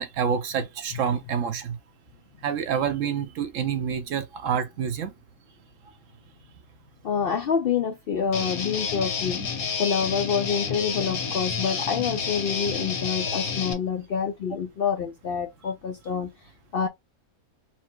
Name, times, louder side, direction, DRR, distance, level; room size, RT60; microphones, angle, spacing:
voice 1, 0.0-1.8 2.4-5.1, right 7 dB, 65° right, 1.0 m, -27 dB
voice 2, 7.0-9.4 9.8-16.9, left 6 dB, 65° left, 0.6 m, -27 dB
Guitar, 8.3-13.7, left 5 dB, 90° left, 1.5 m, -29 dB
4.4 x 2.0 x 4.4 m
omnidirectional pair, 1.5 m